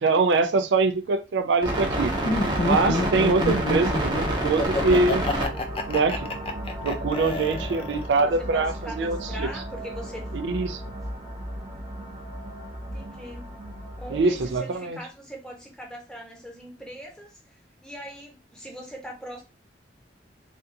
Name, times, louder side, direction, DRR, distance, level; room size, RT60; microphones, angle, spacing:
voice 1, 0.0-2.1 2.6-5.3 5.9-6.3 6.8-9.5 10.4-10.8 14.1-15.0, right 3 dB, 80° right, 0.4 m, -23 dB
sound 1, 1.6-14.6, right 1 dB, 25° right, 0.8 m, -31 dB
Laughter, 2.2-8.2, left 2 dB, 30° left, 0.4 m, -28 dB
voice 2, 8.2-10.3 12.8-13.6 14.0-19.4, equal, 5° left, 0.9 m, -41 dB
3.5 x 2.5 x 2.6 m
head